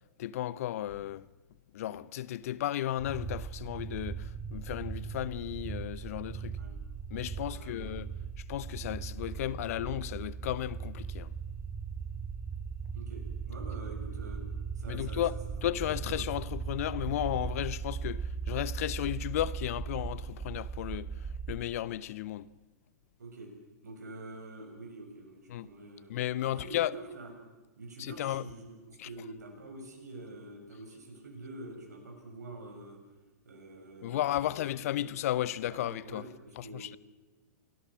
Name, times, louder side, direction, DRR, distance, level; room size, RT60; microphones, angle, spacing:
voice 1, 0.2-1.2 1.7-6.6 7.1-8.1 8.4-11.3 14.9-15.3 15.6-21.1 21.5-22.5 25.5-25.7 26.1-26.9 28.0-28.4 29.0-29.1 34.0-36.2 36.6-37.0, left 12 dB, 60° left, 0.8 m, -34 dB
sound 1, 3.0-21.5, right 6 dB, 10° right, 3.9 m, -38 dB
voice 2, 6.4-6.8 7.5-7.9 12.9-14.4 14.8-15.2 16.0-16.1 23.2-23.5 23.8-26.1 26.4-27.3 27.8-33.0 33.5-35.1 35.7-36.9, right 2 dB, 75° right, 7.2 m, -46 dB
27.5 x 18.5 x 6.2 m
hypercardioid pair, 110°, 9 cm